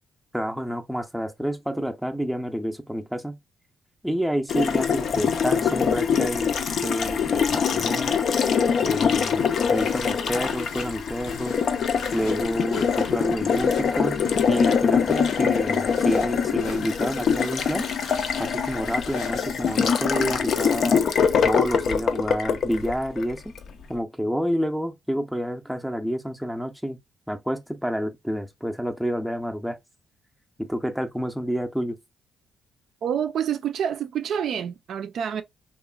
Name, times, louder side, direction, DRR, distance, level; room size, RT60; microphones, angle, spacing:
voice 1, 0.3-3.4 4.0-6.6 6.8-8.2 8.8-9.4 9.7-11.5 12.1-14.2 14.5-17.9 18.4-21.0 21.4-23.5 23.9-27.0 27.3-29.8 30.6-32.0, equal, ahead, 0.5 m, -28 dB
Water tap faucet, 4.5-23.7, left 6 dB, 60° left, 0.4 m, -24 dB
sound 1, 9.5-20.5, left 4 dB, 85° left, 1.1 m, -44 dB
voice 2, 33.0-35.4, right 8 dB, 65° right, 0.3 m, -27 dB
2.9 x 2.4 x 2.3 m
cardioid pair, 90°, 0 cm